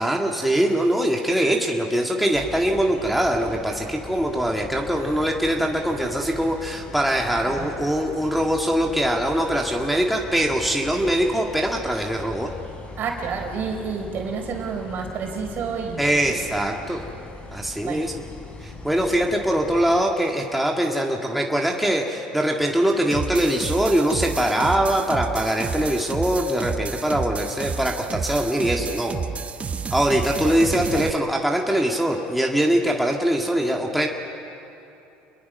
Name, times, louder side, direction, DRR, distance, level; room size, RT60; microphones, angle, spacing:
voice 1, 0.0-12.5 16.0-17.0 17.5-18.2 18.6-29.2 29.9-34.1, right 1 dB, ahead, 0 dB, 2.0 m, -22 dB
sound 1, 2.3-20.0, left 2 dB, 30° left, 4.0 m, -40 dB
voice 2, 13.0-16.4 17.8-18.0, right 5 dB, 55° right, 2 dB, 4.1 m, -29 dB
sound 2, 23.1-31.1, right 6 dB, 30° right, 0.9 m, -30 dB
29.0 x 22.0 x 5.6 m, 2.8 s
supercardioid pair, 85°, 4 cm